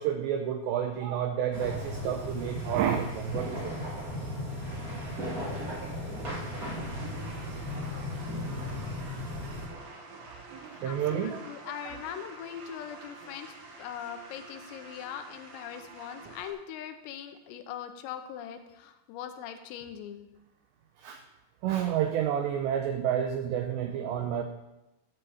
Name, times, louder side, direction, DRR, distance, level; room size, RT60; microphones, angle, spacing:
voice 1, 0.0-3.8 5.6-5.7 7.0-7.4 10.5-11.4 21.0-21.2 21.6-24.4, right 9 dB, 85° right, 5 dB, 2.5 m, -30 dB
sound 1, 1.5-9.7, left 1 dB, 40° right, 1.2 m, -36 dB
sound 2, 6.1-16.5, right 3 dB, 60° right, 2.2 m, -48 dB
voice 2, 10.8-20.3, left 9 dB, 85° left, 7 dB, 3.6 m, -41 dB
12.5 x 5.6 x 7.8 m, 0.96 s
omnidirectional pair, 5.9 m